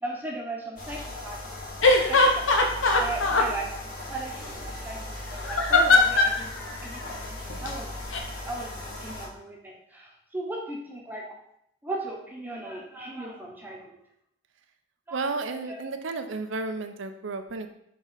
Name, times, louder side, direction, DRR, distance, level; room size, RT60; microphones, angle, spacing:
voice 1, 0.0-1.4 2.1-3.7 4.1-7.9 8.5-8.7 9.0-11.2 11.8-14.0 15.1-15.2 15.7-15.8, right 2 dB, 10° right, -1 dB, 1.0 m, -37 dB
sound 1, 0.8-9.3, left 2 dB, 45° left, 2.2 m, -38 dB
sound 2, 1.8-3.5 5.4-6.4 7.5-7.7 8.1-8.2, left 2 dB, 65° left, 0.9 m, -20 dB
voice 2, 15.1-17.7, right 3 dB, 65° right, 7 dB, 0.6 m, -32 dB
4.9 x 3.8 x 5.6 m, 0.73 s
head